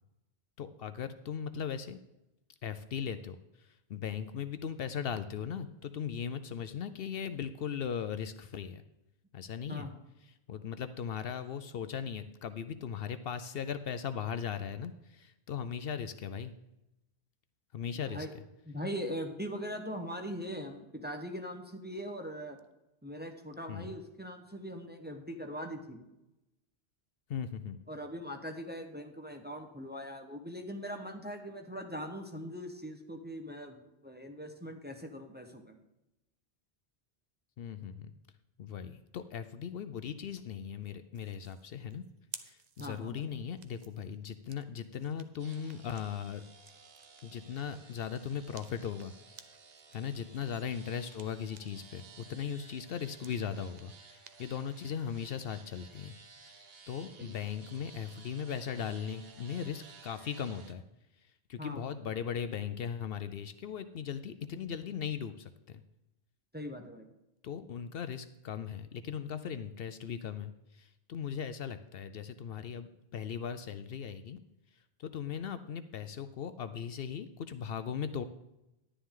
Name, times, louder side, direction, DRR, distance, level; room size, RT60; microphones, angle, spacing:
voice 1, 0.6-2.0 2.6-8.8 9.3-9.9 10.5-16.5 17.7-18.3 23.7-23.9 27.3-27.8 37.6-38.1 38.6-42.1 42.4-46.4 47.2-49.1 49.9-56.1 56.5-56.6 56.9-60.8 61.5-65.8 67.4-74.4 75.0-78.2, left 7 dB, 70° left, 11 dB, 0.8 m, -38 dB
voice 2, 18.7-22.6 23.0-26.0 27.9-35.8 42.8-43.3 57.2-57.3 61.6-61.8 66.5-67.1, equal, 10° right, 4 dB, 1.0 m, -41 dB
sound 1, 41.1-51.9 52.3-55.5, right 6 dB, 50° right, 0.7 m, -56 dB
sound 2, 45.4-60.7, right 4 dB, 70° right, 1.3 m, -56 dB
11.0 x 10.0 x 3.7 m, 0.93 s
omnidirectional pair, 1.1 m